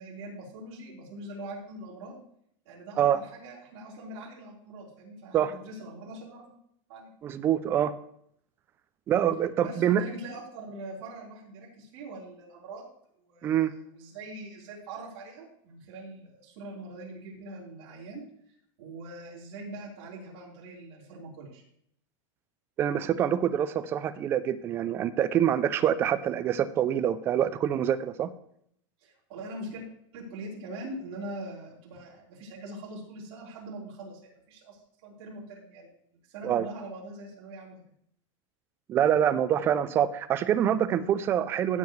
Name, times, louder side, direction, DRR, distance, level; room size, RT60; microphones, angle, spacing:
voice 1, 0.0-2.2 2.7-6.5 6.9-7.1 9.6-12.9 13.2-18.2 18.8-21.6 29.0-29.8 30.1-35.9 36.3-37.8, right 1 dB, 50° right, -4 dB, 3.9 m, -42 dB
voice 2, 7.2-7.9 9.1-10.0 13.4-13.7 22.8-28.3 36.4-36.7 38.9-41.8, right 10 dB, 15° right, 13 dB, 0.3 m, -25 dB
16.5 x 7.1 x 3.1 m, 0.69 s
supercardioid pair, 175°, 17 cm